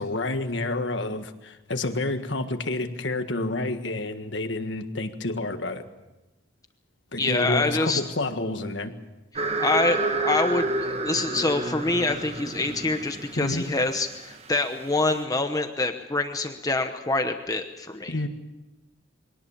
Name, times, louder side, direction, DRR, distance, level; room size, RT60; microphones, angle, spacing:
voice 1, 0.0-5.8 7.1-8.9 13.4-13.6 18.1-18.3, left 2 dB, 65° left, 7 dB, 1.7 m, -29 dB
voice 2, 7.2-8.0 9.6-18.1, left 2 dB, 20° left, 6 dB, 1.0 m, -26 dB
sound 1, 9.4-15.2, right 2 dB, 35° right, 1.4 m, -30 dB
23.5 x 18.0 x 7.3 m, 1.0 s
head